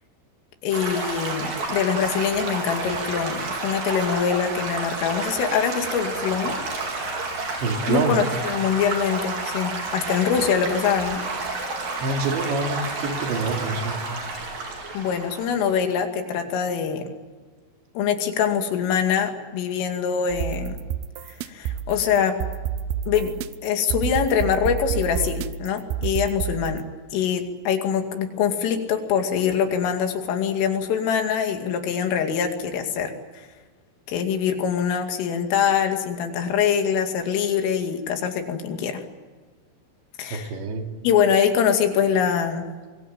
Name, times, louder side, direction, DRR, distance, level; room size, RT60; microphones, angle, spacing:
voice 1, 0.6-6.5 7.9-11.2 14.9-17.1 18.0-20.8 21.4-22.4 23.1-23.3 23.6-26.8 27.1-33.1 34.1-39.0 40.2-40.5 41.0-42.6, left 7 dB, 90° left, 5 dB, 4.9 m, -24 dB
Stream / Gurgling / Trickle dribble, 0.7-15.8, right 3 dB, 45° right, 5.7 m, -30 dB
voice 2, 7.6-8.2 12.0-14.0 40.3-40.9, right 3 dB, 65° right, 3 dB, 4.9 m, -26 dB
sound 1, 20.3-26.8, right 9 dB, 85° right, 2.2 m, -29 dB
25.5 x 22.0 x 9.2 m, 1.4 s
omnidirectional pair, 5.6 m